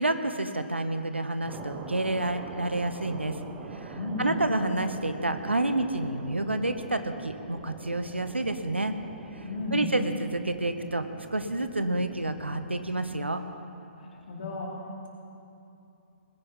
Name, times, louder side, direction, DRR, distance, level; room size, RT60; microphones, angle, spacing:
voice 1, 0.0-3.4 3.7-9.0 9.3-9.4 9.7-11.1 11.3-13.4, right 2 dB, 80° right, 9 dB, 1.0 m, -29 dB
sound 1, 1.5-13.3, right 5 dB, 20° right, 1.0 m, -44 dB
voice 2, 3.9-4.3 9.4-9.8 14.0-14.7, left 3 dB, 55° left, -4 dB, 4.2 m, -34 dB
20.0 x 10.0 x 5.6 m, 2.7 s
figure-of-eight pair, 125°, 6 cm